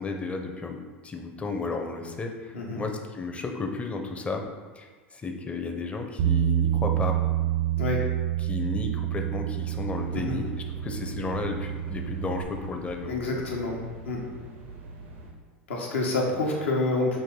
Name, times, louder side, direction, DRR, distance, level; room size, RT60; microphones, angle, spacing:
voice 1, 0.0-4.4 4.7-7.4 8.4-13.4, left 3 dB, 20° left, 3 dB, 0.6 m, -33 dB
Bass guitar, 6.2-12.4, right 12 dB, 70° right, 0.6 m, -28 dB
sound 1, 9.6-15.3, right 3 dB, 85° right, 0.9 m, -43 dB
voice 2, 13.1-13.8 14.0-14.2 15.7-17.2, left 2 dB, 85° left, -1 dB, 1.0 m, -28 dB
5.4 x 2.6 x 3.7 m, 1.4 s
hypercardioid pair, 90°, 7 cm